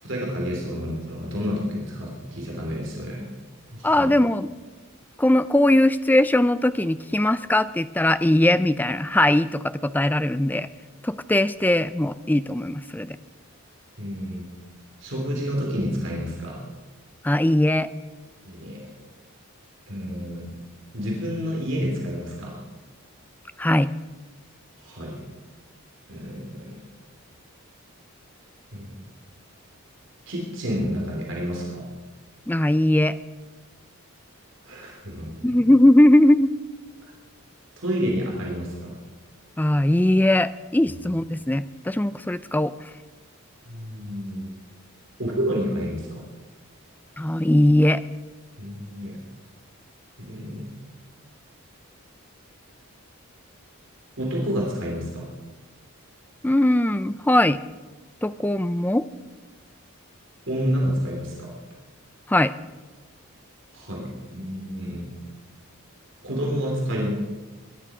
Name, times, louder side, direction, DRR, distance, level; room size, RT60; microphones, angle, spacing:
voice 1, 0.0-3.3 3.7-4.1 14.0-14.5 15.0-16.6 18.4-18.9 19.9-20.5 20.9-22.6 24.8-25.2 26.1-26.8 28.7-29.0 30.3-31.8 34.6-35.6 37.0-37.1 37.8-38.9 43.7-44.5 45.2-46.2 48.6-49.2 50.3-50.7 54.2-55.3 60.5-61.5 63.7-65.1 66.2-67.1, equal, 55° right, -2 dB, 3.1 m, -29 dB
voice 2, 3.8-4.5 5.2-10.7 11.0-13.2 17.2-17.9 23.6-23.9 32.5-33.2 35.4-36.5 39.6-42.9 47.2-48.0 56.4-57.6 58.2-59.1 62.3-62.5, left 1 dB, 10° left, 14 dB, 0.4 m, -20 dB
21.5 x 11.0 x 5.0 m, 1.2 s
head